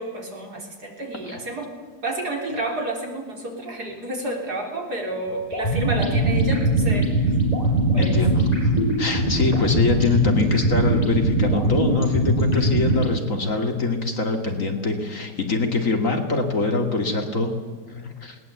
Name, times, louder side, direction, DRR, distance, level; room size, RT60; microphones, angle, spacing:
voice 1, 0.0-1.7 2.0-7.4 7.9-8.2, right 1 dB, 60° right, 1 dB, 4.6 m, -30 dB
sound 1, 5.5-13.2, right 1 dB, 20° left, 5.3 m, -21 dB
voice 2, 8.0-8.7 9.0-17.5 17.9-18.4, left 3 dB, 45° left, 4 dB, 2.7 m, -24 dB
20.0 x 19.0 x 8.4 m, 1.5 s
omnidirectional pair, 1.9 m